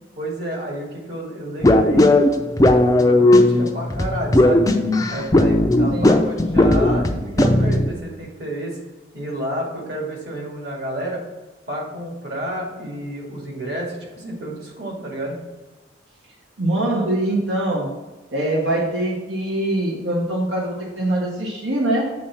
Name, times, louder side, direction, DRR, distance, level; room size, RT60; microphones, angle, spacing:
voice 1, 0.2-2.2 3.0-4.7 5.1-8.8 9.1-11.2 11.7-15.4, right 1 dB, 60° right, -2 dB, 2.2 m, -30 dB
sound 1, 1.6-7.9, left 1 dB, 20° left, 0.4 m, -16 dB
voice 2, 5.9-6.2 16.6-17.9 18.3-22.1, right 1 dB, 85° right, -2 dB, 1.2 m, -23 dB
7.4 x 3.9 x 5.7 m, 1.1 s
head